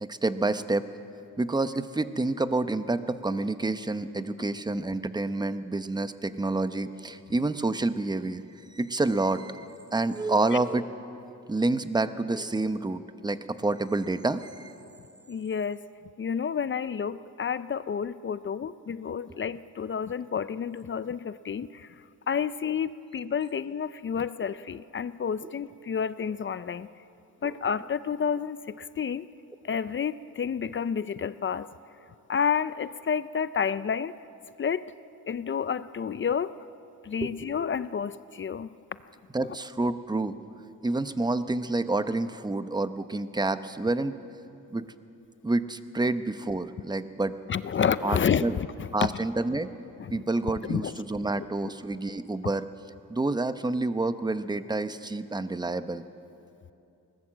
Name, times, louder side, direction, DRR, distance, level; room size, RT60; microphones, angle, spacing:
voice 1, 0.0-0.8 1.4-8.4 8.7-9.6 9.9-10.9 11.5-14.7 19.3-19.4 27.4-27.5 37.2-37.5 39.3-40.4 40.8-44.2 44.7-44.9 45.4-47.3 48.0-48.5 48.9-49.7 50.1-52.7 53.1-56.0, right 2 dB, 10° right, 11 dB, 0.8 m, -28 dB
voice 2, 15.3-15.8 16.2-22.0 22.3-26.9 27.4-29.3 29.6-31.7 32.3-34.1 34.6-34.9 35.3-36.6 37.0-38.7 47.5-49.1 50.0-50.1 50.7-50.9 51.6-51.7, left 7 dB, 35° left, 15 dB, 0.5 m, -30 dB
21.0 x 18.5 x 7.4 m, 2.7 s
cardioid pair, 100°, 34 cm